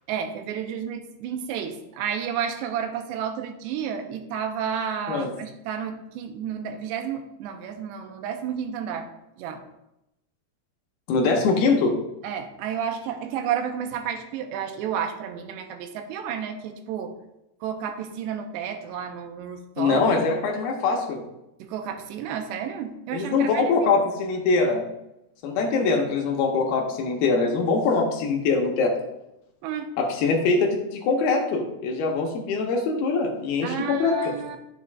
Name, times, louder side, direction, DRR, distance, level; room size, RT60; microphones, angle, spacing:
voice 1, 0.1-9.1 9.4-9.6 12.2-17.2 17.6-20.2 21.6-23.9 29.6-29.9 33.6-34.6, right 8 dB, 90° right, 5 dB, 2.9 m, -31 dB
voice 2, 11.1-11.9 19.8-21.2 23.1-24.8 25.4-28.9 30.0-34.3, left 4 dB, 75° left, 1 dB, 2.6 m, -23 dB
10.5 x 7.2 x 2.4 m, 0.87 s
omnidirectional pair, 4.9 m